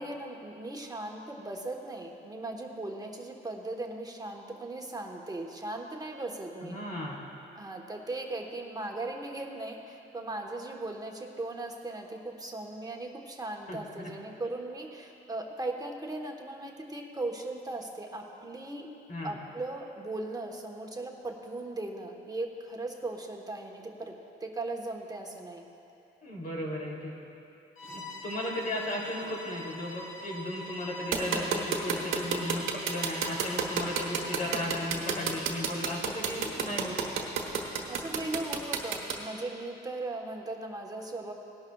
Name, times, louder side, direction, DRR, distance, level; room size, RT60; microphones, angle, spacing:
voice 1, 0.0-6.8 7.5-18.9 19.2-25.7 37.9-41.3, right 2 dB, 20° right, 2 dB, 1.2 m, -38 dB
voice 2, 6.6-7.2 13.7-13.8 19.1-19.4 26.2-27.1 27.9-37.0, left 1 dB, 45° left, -3 dB, 3.0 m, -35 dB
Bowed string instrument, 27.8-34.7, left 1 dB, 80° left, 1.8 m, -43 dB
sound 1, 31.1-39.1, right 7 dB, 85° right, 1.3 m, -30 dB
18.5 x 11.5 x 2.4 m, 2.7 s
cardioid pair, 90°, 20 cm